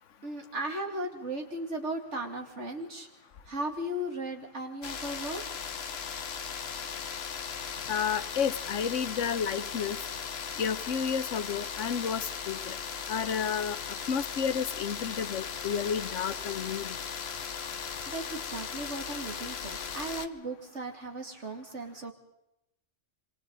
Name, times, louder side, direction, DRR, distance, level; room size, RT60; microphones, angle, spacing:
voice 1, 0.2-3.1 3.4-5.4 18.1-22.1, right 1 dB, 75° right, 4 dB, 2.8 m, -36 dB
sound 1, 4.8-20.3, left 7 dB, 60° left, 1.2 m, -37 dB
voice 2, 7.9-10.0 10.6-12.7 13.1-13.8 14.1-16.9, left 7 dB, 90° left, 14 dB, 1.3 m, -31 dB
27.0 x 25.5 x 4.0 m, 0.88 s
omnidirectional pair, 1.2 m